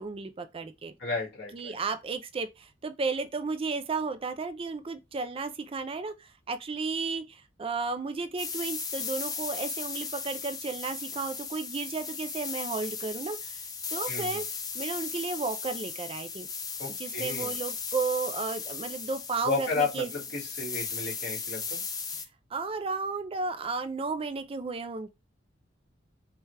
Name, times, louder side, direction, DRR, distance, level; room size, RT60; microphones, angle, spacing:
voice 1, 0.0-0.9 1.5-13.6 13.9-14.4 14.7-16.5 17.0-20.1 22.5-25.1, right 4 dB, 30° right, 0.4 m, -33 dB
voice 2, 1.0-1.8 14.1-14.4 16.8-17.6 19.4-21.8, left 4 dB, 60° left, 2.1 m, -33 dB
sound 1, 8.4-22.3, left 5 dB, 20° left, 0.6 m, -36 dB
5.4 x 2.3 x 3.2 m
head